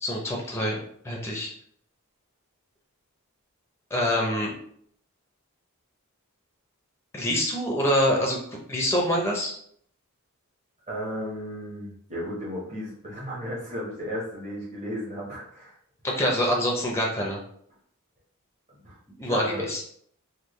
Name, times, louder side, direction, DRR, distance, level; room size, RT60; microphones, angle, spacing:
voice 1, 0.0-0.8 1.0-1.5 3.9-4.5 7.1-8.4 8.7-9.5 16.0-17.4 19.2-19.8, equal, 10° left, -1 dB, 0.5 m, -25 dB
voice 2, 10.9-15.8 18.8-19.7, equal, 30° right, -7 dB, 1.1 m, -34 dB
3.6 x 2.2 x 3.1 m, 0.64 s
head